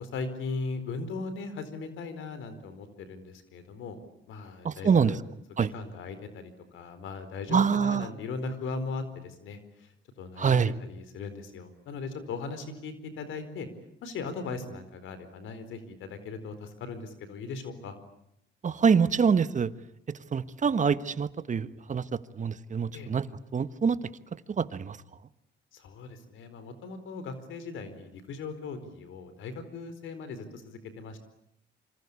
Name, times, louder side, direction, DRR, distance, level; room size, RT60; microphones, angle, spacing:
voice 1, 0.0-4.0 4.3-5.2 5.7-13.7 14.0-18.0 22.9-23.1 25.7-31.2, left 4 dB, 80° left, 11 dB, 4.5 m, -38 dB
voice 2, 4.6-5.2 5.6-5.7 7.5-8.1 10.4-10.7 18.6-19.7 20.3-23.3 23.5-24.0 24.5-25.0, right 6 dB, 40° right, 14 dB, 1.4 m, -25 dB
27.0 x 25.5 x 8.5 m, 0.77 s
cardioid pair, 90°, 20 cm